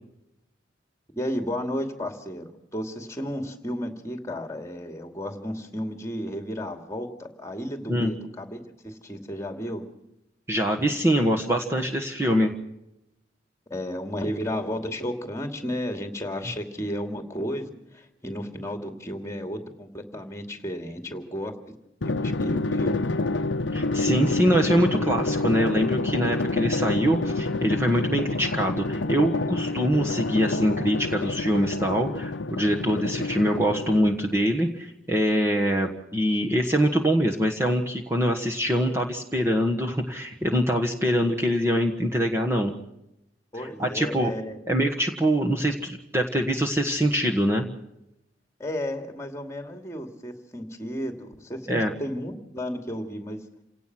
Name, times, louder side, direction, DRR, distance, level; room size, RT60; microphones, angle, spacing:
voice 1, 1.2-2.4 2.7-9.8 13.7-21.7 22.0-23.0 43.5-44.6 48.6-53.4, equal, 15° left, 5 dB, 2.5 m, -33 dB
voice 2, 10.5-12.5 23.7-42.8 43.6-44.3 44.7-47.7 51.7-51.9, equal, 15° right, 1 dB, 1.5 m, -24 dB
Drum, 22.0-34.4, left 2 dB, 80° left, 0.8 m, -28 dB
28.0 x 17.5 x 6.1 m, 0.86 s
head